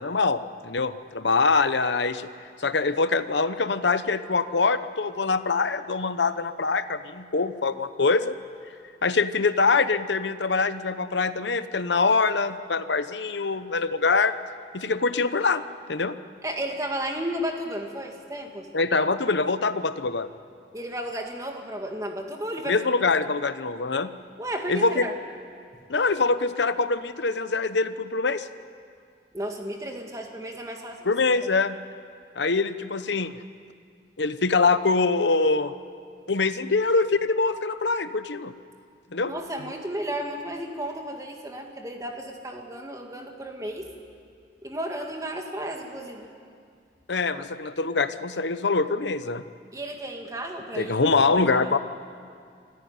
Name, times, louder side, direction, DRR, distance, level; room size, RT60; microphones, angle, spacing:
voice 1, 0.0-2.3 2.6-8.4 9.0-14.3 14.7-15.6 15.9-16.1 18.7-20.3 22.6-24.1 24.7-25.1 25.9-28.5 31.0-31.8 32.4-33.3 34.2-35.7 36.3-38.5 39.1-39.3 47.1-49.4 50.8-51.8, left 4 dB, 75° left, 12 dB, 0.9 m, -24 dB
voice 2, 16.4-18.7 20.7-22.8 24.4-25.1 29.3-31.1 39.2-43.9 44.6-46.3 49.7-51.0 51.3-51.7, right 1 dB, 20° right, 3 dB, 2.1 m, -33 dB
25.5 x 14.0 x 9.6 m, 2.3 s
head